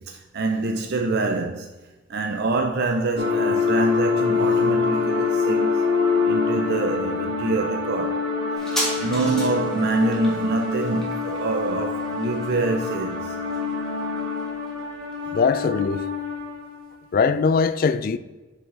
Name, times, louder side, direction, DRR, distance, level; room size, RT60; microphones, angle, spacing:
voice 1, 0.0-1.7 2.1-5.9 6.3-8.2 9.0-13.4, right 2 dB, 60° right, 0.5 m, -25 dB
sound 1, 3.2-16.8, left 4 dB, 75° right, 2.0 m, -25 dB
sound 2, 8.6-15.7 15.9-16.0, equal, 5° left, 1.9 m, -36 dB
voice 2, 15.3-16.1 17.1-18.2, left 5 dB, 50° left, 0.3 m, -21 dB
7.1 x 5.5 x 3.3 m
head